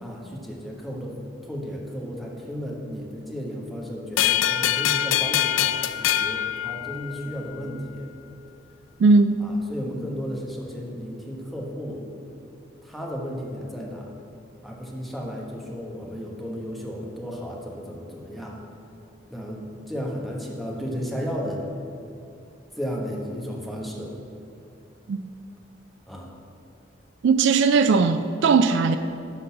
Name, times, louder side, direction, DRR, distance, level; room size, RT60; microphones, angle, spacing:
voice 1, 0.0-1.2 1.4-8.1 9.4-12.0 12.8-14.1 14.6-18.6 19.3-21.6 22.8-24.1 26.1-26.3, equal, ahead, 1.1 m, -34 dB
sound 1, 4.2-7.4, left 11 dB, 75° left, 0.3 m, -24 dB
voice 2, 9.0-9.5 25.1-25.2 27.2-29.0, right 4 dB, 65° right, 0.3 m, -18 dB
11.5 x 4.0 x 5.7 m
head